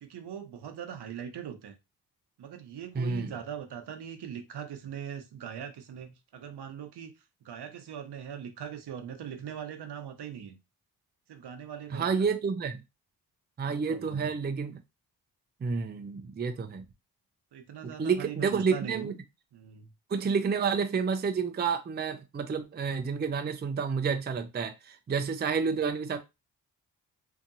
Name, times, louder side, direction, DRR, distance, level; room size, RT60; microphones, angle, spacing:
voice 1, 0.0-1.7 2.4-7.1 7.4-10.6 11.3-12.3 13.6-14.3 17.5-19.2 19.5-19.9, right 8 dB, 65° right, 0.9 m, -41 dB
voice 2, 2.9-3.3 11.9-12.8 13.6-14.8 15.6-16.8 18.0-19.2 20.1-26.2, right 5 dB, 25° right, 0.5 m, -29 dB
2.7 x 2.6 x 2.6 m
supercardioid pair, 40°, 43 cm